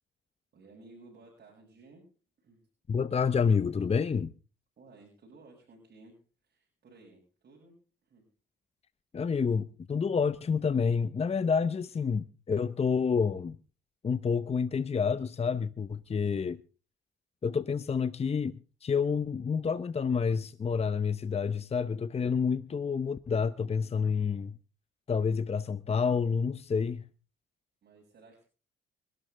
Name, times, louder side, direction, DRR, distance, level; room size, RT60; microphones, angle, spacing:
voice 1, 0.5-2.1 2.4-2.6 4.8-8.3 27.8-28.4, right 3 dB, 50° right, 7.0 m, -56 dB
voice 2, 2.9-4.3 9.1-13.6 14.0-16.6 17.4-24.6 25.1-27.1, left 6 dB, 30° left, 0.8 m, -29 dB
25.5 x 12.5 x 3.4 m
cardioid pair, 90°, 20 cm